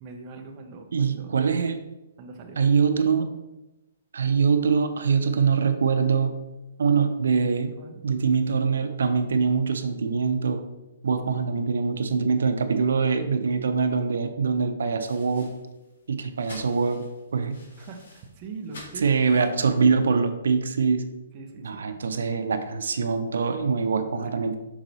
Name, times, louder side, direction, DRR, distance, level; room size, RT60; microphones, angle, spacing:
voice 1, 0.0-1.4 2.2-2.6 7.8-8.0 11.3-11.4 17.8-19.4 21.3-21.9 23.9-24.6, right 4 dB, 20° right, 2 dB, 0.5 m, -42 dB
voice 2, 0.9-1.8 2.6-3.3 4.1-6.3 6.8-7.7 8.0-10.6 11.0-15.5 16.1-17.0 17.3-17.6 19.0-21.0 21.6-24.6, right 5 dB, 75° right, 8 dB, 0.6 m, -23 dB
sound 1, 15.0-20.1, left 1 dB, 75° left, 2.2 m, -49 dB
6.0 x 4.0 x 3.9 m, 1.0 s
hypercardioid pair, 180°, 0 cm